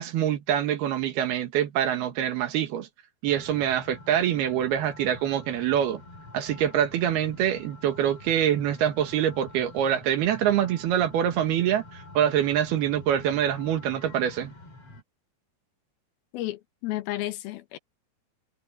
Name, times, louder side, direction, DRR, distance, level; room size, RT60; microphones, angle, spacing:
voice 1, 0.0-2.9 3.2-6.0 6.3-14.5, right 10 dB, 80° right, 3.6 m, -25 dB
sound 1, 3.3-15.0, left 2 dB, 40° left, 4.9 m, -47 dB
voice 2, 16.3-17.8, left 15 dB, 75° left, 2.8 m, -32 dB
omnidirectional pair, 4.5 m